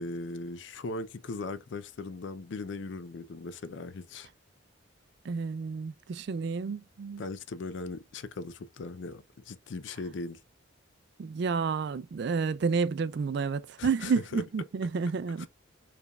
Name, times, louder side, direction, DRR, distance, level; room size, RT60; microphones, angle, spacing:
voice 1, 0.0-4.3 7.2-10.4 13.8-14.4 15.4-15.5, left 3 dB, 60° left, 0.5 m, -38 dB
voice 2, 5.2-7.2 11.2-15.5, right 5 dB, 55° right, 0.3 m, -30 dB
4.7 x 3.3 x 2.3 m
head